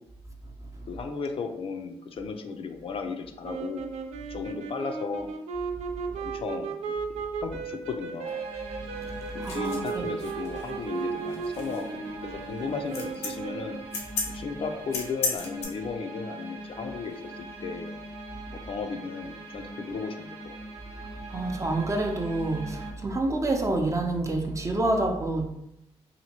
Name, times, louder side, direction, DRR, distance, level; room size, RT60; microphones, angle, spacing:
voice 1, 0.9-3.9 4.3-5.3 6.2-6.7 7.1-8.4 9.3-13.8 14.3-18.0 18.6-20.6, left 5 dB, 55° left, 5 dB, 0.4 m, -35 dB
sound 1, 3.4-13.9, right 5 dB, 80° right, 0.4 m, -35 dB
sound 2, 8.2-22.9, right 2 dB, 60° right, 0.8 m, -42 dB
sound 3, 9.4-15.7, left 4 dB, 90° left, 0.7 m, -35 dB
voice 2, 9.4-10.2 21.3-25.5, right 2 dB, 25° right, 2 dB, 0.6 m, -28 dB
2.7 x 2.5 x 2.8 m, 0.82 s
cardioid pair, 65°, 11 cm